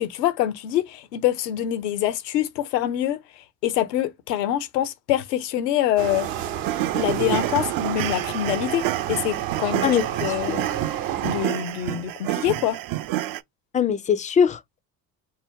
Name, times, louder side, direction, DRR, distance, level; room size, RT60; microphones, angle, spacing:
voice 1, 0.0-6.3 6.9-10.7 11.2-12.8, left 12 dB, 80° left, 0.7 m, -25 dB
sound 1, 6.0-11.5, right 11 dB, 65° right, 0.8 m, -30 dB
sound 2, 6.6-13.4, right 14 dB, 45° right, 0.5 m, -29 dB
voice 2, 13.7-14.8, left 7 dB, 20° left, 0.3 m, -21 dB
2.9 x 2.1 x 3.5 m
hypercardioid pair, 55°, 48 cm